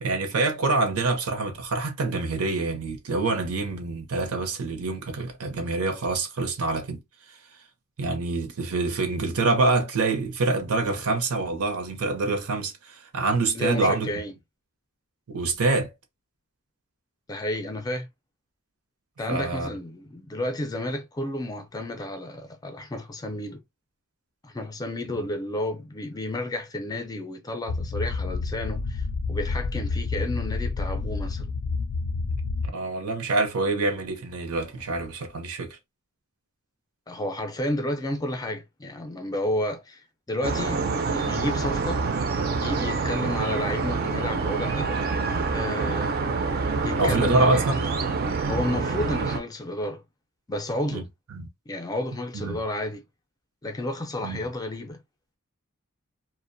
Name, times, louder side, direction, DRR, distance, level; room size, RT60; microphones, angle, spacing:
voice 1, 0.0-7.0 8.0-14.1 15.3-15.9 19.3-19.7 25.1-25.3 32.7-35.8 47.0-47.8 50.9-51.0 51.3-51.5 52.3-52.6 54.2-54.4, right 3 dB, 85° right, 0.7 m, -26 dB
voice 2, 13.5-14.3 17.3-18.1 19.2-23.6 24.4-31.5 37.1-42.0 42.6-45.0 45.5-46.2 46.8-47.8 48.5-50.0 50.5-51.1 51.7-53.0 53.6-55.0, left 1 dB, 15° left, 0.4 m, -31 dB
sound 1, 27.7-32.7, left 3 dB, 80° left, 0.4 m, -29 dB
sound 2, 40.4-49.4, right 4 dB, 45° right, 0.4 m, -27 dB
2.4 x 2.1 x 2.5 m
head